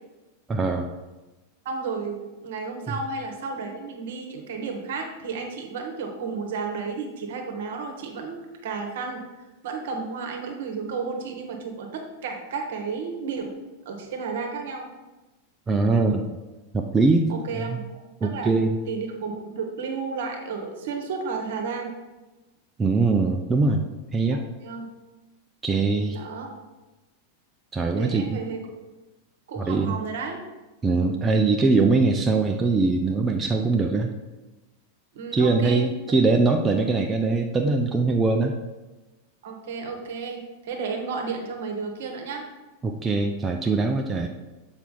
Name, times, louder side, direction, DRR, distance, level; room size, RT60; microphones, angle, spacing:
voice 1, 0.5-0.9 2.9-3.0 15.7-16.2 16.7-17.8 18.2-18.8 22.8-23.8 24.1-24.4 25.6-26.2 27.7-28.4 29.6-30.0 30.8-34.1 35.3-38.6 42.8-44.3, right 3 dB, 15° right, 3 dB, 0.4 m, -22 dB
voice 2, 1.6-9.2 9.6-13.5 13.8-14.9 17.3-17.8 18.2-18.6 18.9-22.0 24.6-24.9 26.1-26.5 28.0-28.6 29.5-30.4 35.1-36.2 39.4-42.4, right 5 dB, 55° right, 3 dB, 1.0 m, -32 dB
7.0 x 4.4 x 3.8 m, 1.1 s
figure-of-eight pair, 90°, 0 cm